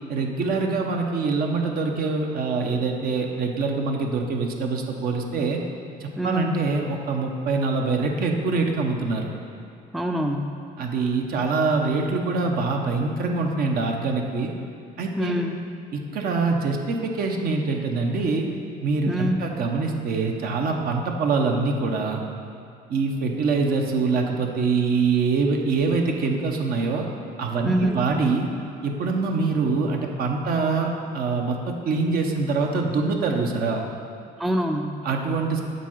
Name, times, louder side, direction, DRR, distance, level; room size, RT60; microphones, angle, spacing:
voice 1, 0.1-5.6 6.0-9.3 10.8-14.5 15.0-15.3 15.9-18.5 18.8-22.2 22.9-27.1 27.4-28.5 28.8-33.9 35.0-35.6, right 4 dB, 65° right, 2 dB, 0.9 m, -24 dB
voice 2, 6.2-6.5 9.9-10.6 15.2-15.6 19.1-19.4 27.6-28.0 34.4-35.0, equal, ahead, 4 dB, 0.4 m, -25 dB
8.2 x 3.7 x 6.5 m, 2.6 s
cardioid pair, 110°, 17 cm